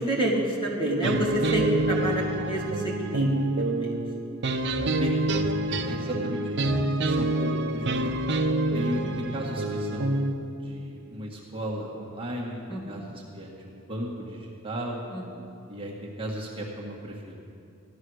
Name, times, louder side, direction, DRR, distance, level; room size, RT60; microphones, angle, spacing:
voice 1, 0.0-4.0 12.7-13.0 15.1-15.5, right 1 dB, 25° left, -3 dB, 2.4 m, -28 dB
sound 1, 1.0-10.3, right 2 dB, 55° right, 0.8 m, -27 dB
voice 2, 5.0-5.4 5.6-6.7 7.0-8.2 8.7-10.2 10.6-15.0 15.7-17.4, equal, 25° right, -4 dB, 1.7 m, -35 dB
15.5 x 11.0 x 6.4 m, 2.6 s
head